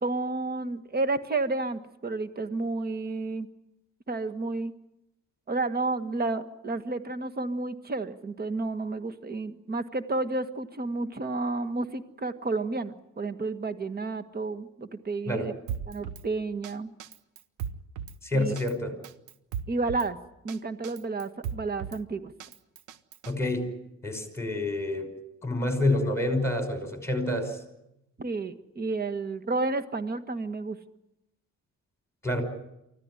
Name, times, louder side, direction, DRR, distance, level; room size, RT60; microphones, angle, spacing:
voice 1, 0.0-3.5 4.1-4.7 5.5-15.5 15.9-16.9 18.3-18.5 19.7-20.2 20.4-22.3 28.2-30.8, right 3 dB, 30° right, 11 dB, 1.6 m, -31 dB
Drum kit, 15.7-16.2 16.6-16.7 17.0-18.2 18.6-18.7 19.0-20.1 20.5-20.6 20.8-22.0 22.4-23.3, right 8 dB, 80° right, 1.1 m, -37 dB
voice 2, 18.2-18.9 23.3-23.7 24.0-25.1 25.4-27.6 32.2-32.4, left 1 dB, 10° left, 6 dB, 5.6 m, -28 dB
24.5 x 15.5 x 9.9 m, 0.88 s
cardioid pair, 90°, 30 cm